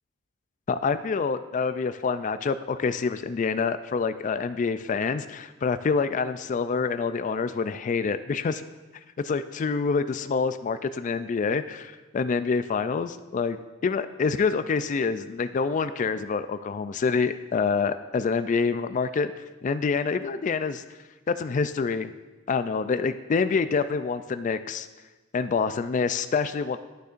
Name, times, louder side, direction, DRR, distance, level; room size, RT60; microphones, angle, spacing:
voice 1, 0.7-8.6 9.2-13.6 13.8-19.3 19.6-20.8 21.3-22.1 22.5-24.9 25.3-26.8, left 5 dB, 35° left, 12 dB, 0.3 m, -26 dB
11.5 x 6.5 x 2.5 m, 1.2 s
head